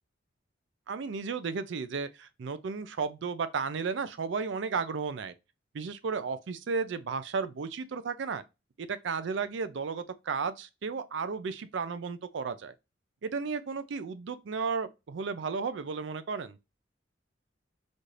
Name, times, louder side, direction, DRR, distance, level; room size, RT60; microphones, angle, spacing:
voice 1, 0.9-5.3 5.7-8.4 8.8-12.7 13.2-16.6, right 5 dB, 70° right, 0.4 m, -34 dB
4.1 x 2.5 x 3.2 m
head